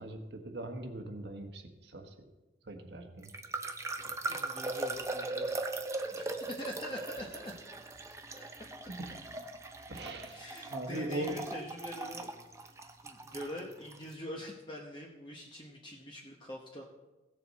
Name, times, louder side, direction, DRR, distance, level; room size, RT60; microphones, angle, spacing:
voice 1, 0.0-2.1 2.7-3.3 8.9-9.1 9.9-10.4 10.7-11.3, right 1 dB, 80° right, 5 dB, 1.3 m, -40 dB
sound 1, 3.2-14.0, right 3 dB, 15° right, 0.6 m, -39 dB
voice 2, 4.3-5.5 6.1-7.6 8.3-8.5 8.8-8.9 10.3-12.3 13.0-17.1, left 1 dB, 25° left, -2 dB, 0.9 m, -44 dB
16.5 x 6.8 x 4.1 m, 1.1 s
head